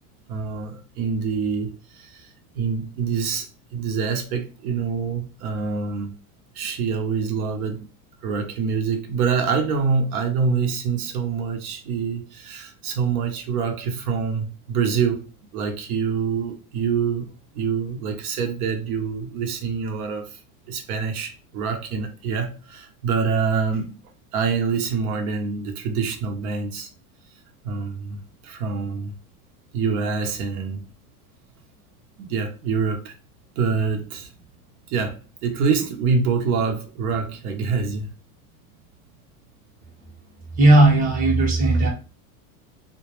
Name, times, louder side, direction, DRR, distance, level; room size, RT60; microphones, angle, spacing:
voice 1, 0.3-6.2 6.5-7.9 8.2-20.4 20.7-24.0 24.3-26.9 27.6-29.1 29.7-30.8 32.2-33.1 33.6-34.3 34.9-38.1, right 5 dB, 85° right, 0.7 m, -26 dB
voice 2, 40.6-41.9, right 2 dB, 20° right, 0.7 m, -16 dB
2.1 x 2.0 x 2.9 m
supercardioid pair, 140°, 44 cm